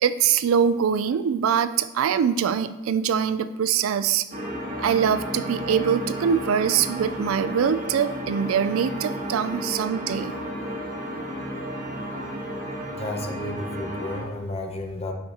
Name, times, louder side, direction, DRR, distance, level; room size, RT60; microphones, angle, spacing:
voice 1, 0.0-4.2 4.8-10.4, right 7 dB, 80° right, 12 dB, 0.3 m, -23 dB
sound 1, 4.3-14.2, equal, 40° right, 1.5 m, -33 dB
voice 2, 12.9-15.1, left 1 dB, 30° left, 3 dB, 0.7 m, -32 dB
7.1 x 4.9 x 2.9 m, 1.1 s
head